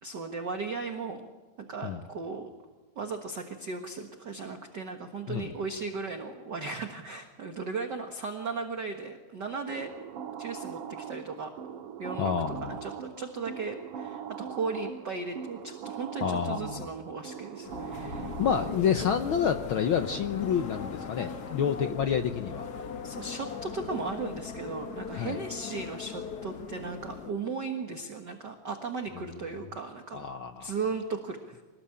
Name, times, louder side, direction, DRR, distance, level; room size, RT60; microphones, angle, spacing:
voice 1, 0.0-1.3 1.6-2.5 2.9-9.9 10.4-11.5 12.0-12.3 12.6-18.3 23.0-30.2 30.6-31.6, right 4 dB, 45° right, 4 dB, 1.6 m, -36 dB
sound 1, 9.7-19.1, right 8 dB, 80° right, 3.0 m, -41 dB
voice 2, 12.2-12.8 16.2-16.9 18.4-22.7 25.1-25.4 29.1-29.3 30.1-30.7, left 7 dB, 80° left, 7 dB, 1.1 m, -29 dB
sound 2, 17.6-27.3, left 6 dB, 55° left, 1.1 m, -39 dB
25.5 x 19.5 x 8.8 m, 1.2 s
omnidirectional pair, 3.6 m